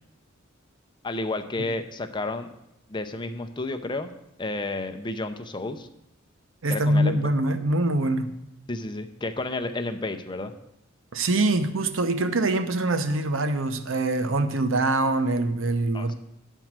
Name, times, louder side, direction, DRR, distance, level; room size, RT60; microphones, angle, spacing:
voice 1, 1.0-2.5 2.9-4.1 4.4-5.9 6.7-7.2 8.7-10.5 15.9-16.1, left 2 dB, 25° left, 7 dB, 0.6 m, -31 dB
voice 2, 6.6-8.3 11.1-16.1, right 2 dB, 75° right, 9 dB, 0.8 m, -24 dB
9.1 x 4.5 x 7.4 m, 0.82 s
head